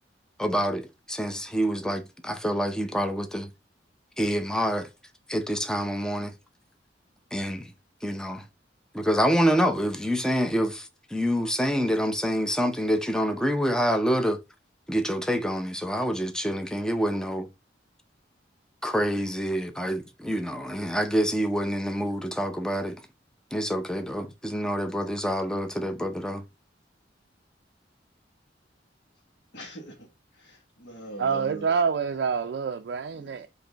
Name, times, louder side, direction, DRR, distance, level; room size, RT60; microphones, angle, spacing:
voice 1, 0.4-3.5 4.2-4.9 5.3-6.3 7.3-7.7 8.0-8.4 8.9-14.4 14.9-17.5 18.8-23.0 23.5-26.4, equal, 5° left, 0.5 m, -27 dB
voice 2, 29.5-31.7 33.2-33.4, equal, 65° left, 1.3 m, -43 dB
voice 3, 31.2-33.5, right 6 dB, 65° right, 0.4 m, -27 dB
5.0 x 2.7 x 3.8 m
head